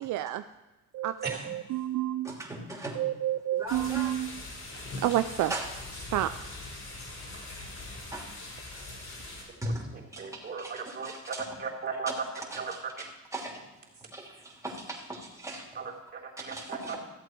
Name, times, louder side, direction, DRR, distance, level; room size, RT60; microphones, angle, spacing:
voice 1, 0.0-0.4 0.9-2.4 3.0-4.4 5.0-5.5 6.1-6.3, right 14 dB, 80° right, 11 dB, 0.5 m, -29 dB
voice 2, 2.2-3.0 3.5-4.2 5.5-5.7 8.1-8.3 8.8-8.9 9.6-9.9 10.1-11.5 12.3-13.6 14.1-15.7 16.4-17.0, right 1 dB, 10° right, -2 dB, 2.9 m, -39 dB
sound 1, 3.7-9.4, left 2 dB, 60° left, 4.8 m, -42 dB
voice 3, 10.2-12.3 12.6-13.0 15.7-17.0, right 5 dB, 35° right, -2 dB, 3.5 m, -36 dB
14.5 x 8.1 x 4.6 m, 1.1 s
cardioid pair, 90°, 30 cm